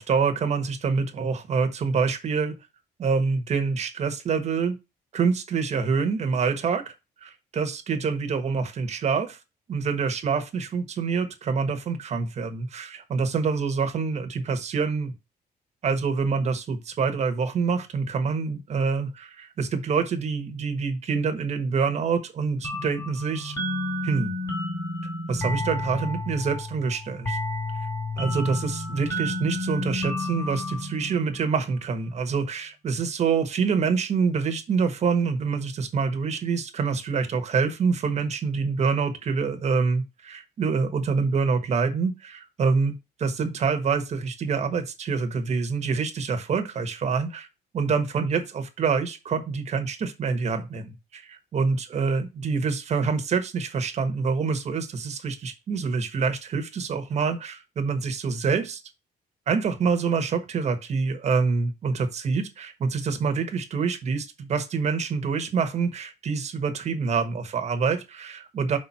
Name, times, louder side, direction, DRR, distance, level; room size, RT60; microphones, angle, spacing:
voice 1, 0.0-2.6 3.0-4.8 5.1-6.9 7.2-9.4 9.7-15.1 15.8-23.6 24.0-24.3 25.3-27.4 28.2-47.5 47.7-58.8 59.5-68.8, right 5 dB, 45° right, 1.3 m, -26 dB
sound 1, 22.6-32.0, left 1 dB, 20° left, 2.6 m, -31 dB
5.4 x 4.3 x 5.4 m
cardioid pair, 155°, 17 cm